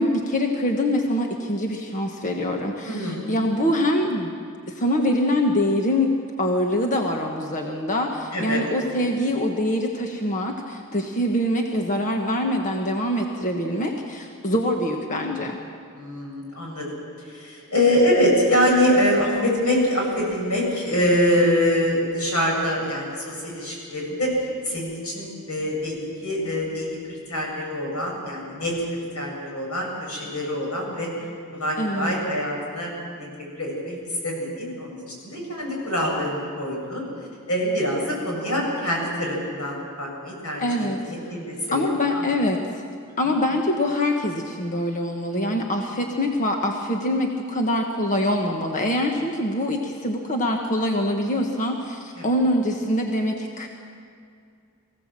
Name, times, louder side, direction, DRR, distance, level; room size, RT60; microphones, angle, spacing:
voice 1, 0.0-4.3 4.7-6.1 6.4-15.6 31.8-32.3 40.6-41.0 41.7-42.6 43.2-53.7, left 1 dB, 35° left, 2 dB, 1.4 m, -24 dB
voice 2, 2.9-3.3 8.3-8.6 15.9-17.0 17.2-24.3 24.6-31.1 31.5-33.3 33.6-34.0 34.2-37.0 37.5-42.3 52.2-52.3, equal, 90° left, -1 dB, 7.3 m, -25 dB
23.0 x 16.5 x 7.6 m, 2.3 s
head